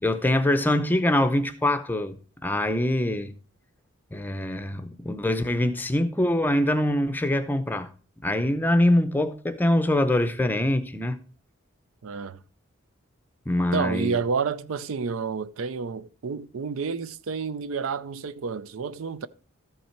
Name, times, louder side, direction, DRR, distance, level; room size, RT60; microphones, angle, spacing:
voice 1, 0.0-3.3 4.1-7.9 8.2-11.2 13.5-14.2, left 1 dB, 10° left, 0.5 m, -24 dB
voice 2, 12.0-12.4 13.7-19.3, right 5 dB, 80° right, 0.5 m, -30 dB
13.0 x 5.6 x 4.4 m
head